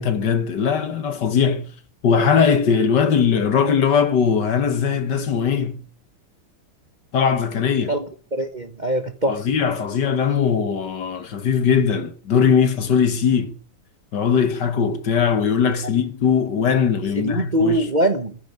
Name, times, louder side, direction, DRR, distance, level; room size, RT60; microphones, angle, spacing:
voice 1, 0.0-1.7 2.0-5.8 7.1-8.0 9.3-13.6 14.1-17.9, left 6 dB, 55° left, 1.9 m, -20 dB
voice 2, 8.3-9.4 17.1-18.4, right 1 dB, 25° right, 1.2 m, -22 dB
14.5 x 10.5 x 9.5 m
omnidirectional pair, 2.4 m